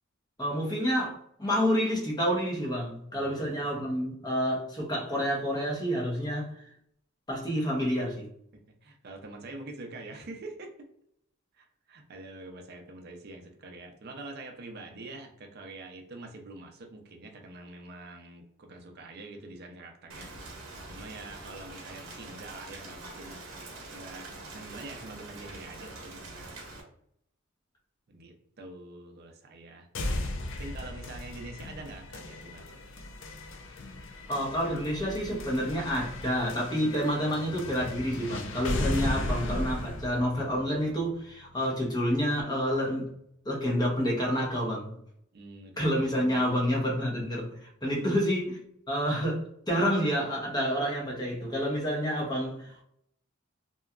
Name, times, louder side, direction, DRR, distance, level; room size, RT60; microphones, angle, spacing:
voice 1, 0.4-6.6 7.3-8.3 34.3-43.1 43.4-44.9 45.8-48.6 48.9-52.8, equal, 20° left, -2 dB, 0.7 m, -29 dB
voice 2, 3.1-3.8 8.8-10.9 11.5-20.3 20.9-26.6 28.1-29.9 30.6-32.6 45.3-46.6, right 2 dB, 50° right, 3 dB, 0.5 m, -45 dB
Rain, 20.1-26.8, right 2 dB, 80° right, 0.8 m, -44 dB
sound 1, 29.9-41.9, left 1 dB, 65° left, 0.4 m, -36 dB
2.7 x 2.2 x 2.3 m, 0.70 s
head